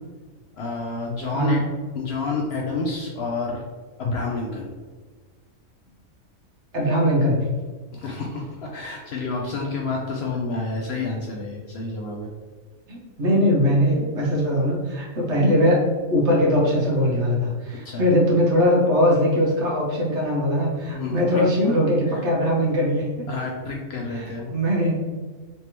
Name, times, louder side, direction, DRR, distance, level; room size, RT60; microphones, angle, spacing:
voice 1, 0.6-1.7 1.9-3.6 4.0-4.7 7.9-12.3 17.8-18.1 20.9-21.4 22.1-22.2 23.3-24.5, left 3 dB, 65° left, -1 dB, 0.7 m, -29 dB
voice 2, 1.3-1.7 6.7-7.5 12.9-15.8 16.1-23.3 24.1-25.0, equal, 60° right, -3 dB, 1.2 m, -21 dB
3.4 x 3.2 x 2.9 m, 1.4 s
omnidirectional pair, 1.4 m